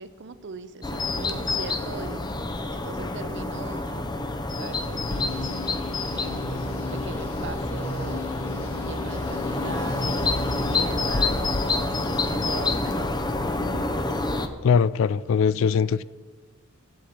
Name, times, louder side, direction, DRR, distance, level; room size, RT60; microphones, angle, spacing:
voice 1, 0.0-2.2 2.7-4.1 4.6-5.6 6.1-8.2 8.8-11.9 12.2-13.1 13.6-13.9, right 4 dB, 55° right, 0.6 m, -40 dB
sound 1, 0.8-14.5, left 2 dB, 20° left, 0.6 m, -28 dB
sound 2, 5.1-10.9, left 2 dB, 90° left, 1.6 m, -36 dB
voice 2, 14.6-16.0, left 6 dB, 65° left, 0.3 m, -21 dB
8.4 x 7.7 x 8.6 m
head